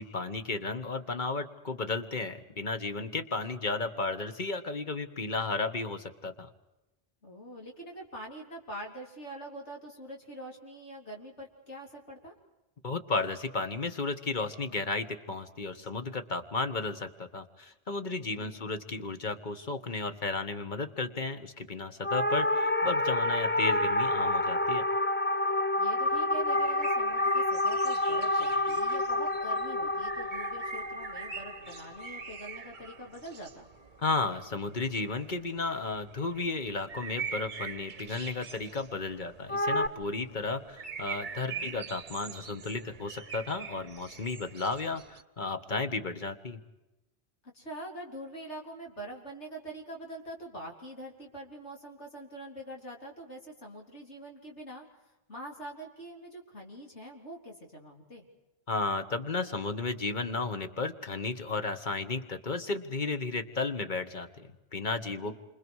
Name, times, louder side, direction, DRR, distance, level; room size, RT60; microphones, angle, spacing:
voice 1, 0.0-6.5 12.8-24.9 34.0-46.6 58.7-65.4, left 3 dB, 40° left, 9 dB, 1.6 m, -33 dB
voice 2, 7.2-12.3 18.1-18.7 25.8-33.7 41.4-41.8 47.5-54.9 55.3-58.3 65.0-65.4, right 1 dB, 70° left, -1 dB, 3.9 m, -44 dB
sound 1, 22.0-32.5 39.5-39.9, left 1 dB, 15° left, 0.5 m, -28 dB
sound 2, 26.0-45.2, right 6 dB, 45° right, 1.0 m, -44 dB
29.0 x 27.0 x 4.8 m, 0.99 s
omnidirectional pair, 1.2 m